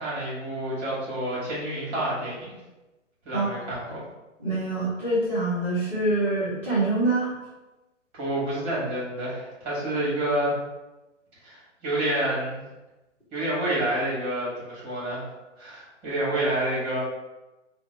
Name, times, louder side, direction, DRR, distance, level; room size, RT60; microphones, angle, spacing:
voice 1, 0.0-2.6 3.2-4.0 8.1-10.5 11.4-12.6 13.3-15.2 15.6-17.0, right 1 dB, 20° right, -6 dB, 1.3 m, -28 dB
voice 2, 4.4-7.3, right 2 dB, 5° left, -18 dB, 0.7 m, -25 dB
2.8 x 2.2 x 3.8 m, 1.0 s
figure-of-eight pair, 140°, 38 cm